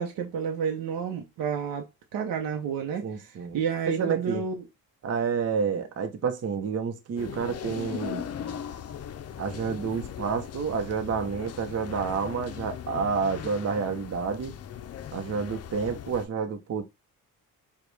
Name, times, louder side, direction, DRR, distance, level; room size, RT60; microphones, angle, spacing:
voice 1, 0.0-4.6, right 7 dB, 80° right, 0.7 m, -30 dB
voice 2, 3.0-3.6 3.9-4.5 5.0-8.3 9.4-14.5 15.1-16.8, right 6 dB, 45° right, 0.8 m, -29 dB
sound 1, 7.2-16.3, left 9 dB, 50° left, 0.5 m, -39 dB
5.1 x 2.3 x 3.2 m
cardioid pair, 110°, 34 cm